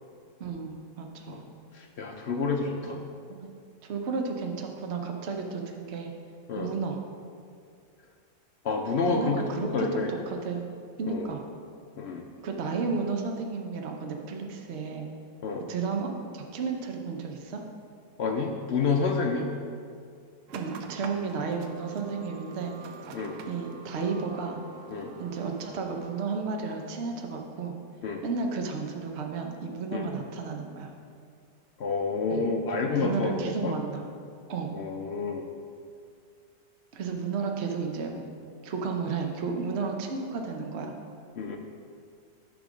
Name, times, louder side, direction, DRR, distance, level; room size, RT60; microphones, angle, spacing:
voice 1, 0.4-1.4 3.4-3.5 3.8-6.1 6.6-7.0 9.0-10.0 10.3-10.6 11.0-11.4 12.4-15.1 15.7-17.6 20.5-22.8 23.5-24.6 25.2-27.7 28.2-30.9 32.3-32.5 32.8-34.1 34.5-34.7 36.9-38.3 38.6-40.9, right 5 dB, 55° right, 2 dB, 0.8 m, -32 dB
voice 2, 1.7-3.0 6.5-6.7 8.6-9.4 9.7-10.1 11.1-11.3 12.0-12.3 15.4-15.6 18.2-19.5 23.1-23.4 24.9-25.1 28.0-28.2 29.9-30.1 31.8-33.7 34.7-35.4 38.1-38.2 41.4-41.6, left 4 dB, 70° left, 2 dB, 0.6 m, -29 dB
sound 1, 20.5-26.2, right 5 dB, 80° right, 1.2 m, -45 dB
10.0 x 3.7 x 6.1 m, 2.3 s
omnidirectional pair, 1.7 m